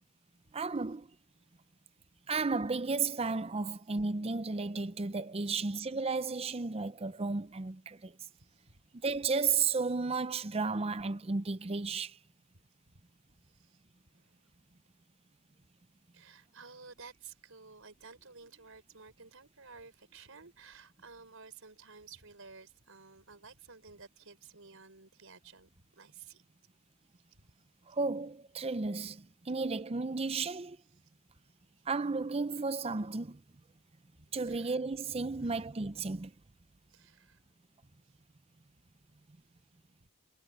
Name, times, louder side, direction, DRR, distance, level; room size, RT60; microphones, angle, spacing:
voice 1, 0.5-1.1 2.3-8.2 9.0-12.2 27.9-30.8 31.9-33.4 34.3-36.3, right 4 dB, 25° right, 0.6 m, -33 dB
voice 2, 13.4-13.8 14.1-14.5 16.1-26.4 27.3-27.5 31.0-31.1 31.4-31.5 34.1-34.8 35.4-35.6 36.9-37.4, right 5 dB, 65° right, 5.8 m, -54 dB
head